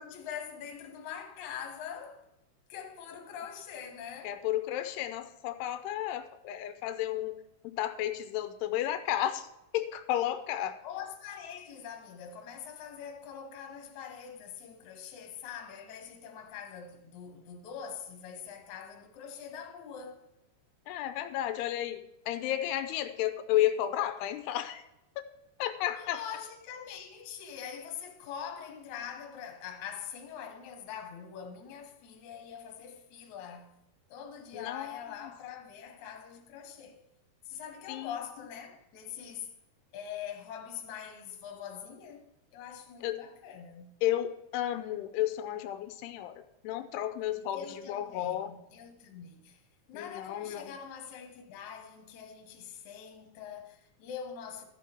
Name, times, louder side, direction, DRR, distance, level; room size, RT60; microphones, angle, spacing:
voice 1, 0.0-2.3 2.7-4.5 10.8-20.3 26.0-33.8 34.1-37.0 37.5-39.5 39.9-44.0 47.5-49.6 49.9-54.6, left 8 dB, 60° left, 2.3 m, -43 dB
voice 2, 4.2-9.5 9.7-10.8 20.9-24.8 25.2-25.3 25.6-26.2 34.5-35.0 37.9-38.1 43.0-43.2 44.0-48.5 49.9-50.7, left 12 dB, 85° left, 2.7 m, -32 dB
13.5 x 7.2 x 4.5 m
omnidirectional pair, 4.6 m